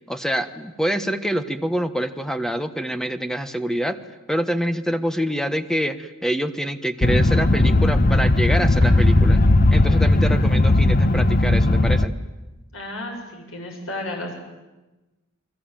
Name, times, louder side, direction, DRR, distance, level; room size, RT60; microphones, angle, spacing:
voice 1, 0.1-4.0 4.3-9.4 9.7-12.2, equal, ahead, 10 dB, 1.3 m, -26 dB
sound 1, 7.0-12.1, left 2 dB, 45° left, 1.1 m, -17 dB
Explosion, 8.8-10.6, equal, 60° right, 4.4 m, -35 dB
voice 2, 12.7-14.3, left 1 dB, 70° left, 2 dB, 7.3 m, -32 dB
29.5 x 22.0 x 9.0 m, 1.1 s
head